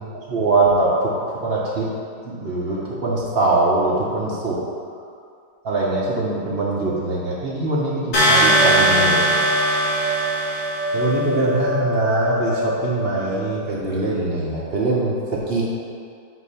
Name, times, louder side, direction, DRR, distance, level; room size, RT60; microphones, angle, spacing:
voice 1, 0.3-1.9 2.2-4.6 5.6-9.3 10.9-15.6, right 2 dB, 50° right, -5 dB, 0.7 m, -22 dB
sound 1, 8.1-11.0, right 1 dB, 65° left, 2.2 m, -19 dB
Trumpet, 8.5-13.5, left 1 dB, 85° left, 2.0 m, -25 dB
8.0 x 2.8 x 5.4 m, 2.3 s
omnidirectional pair, 2.1 m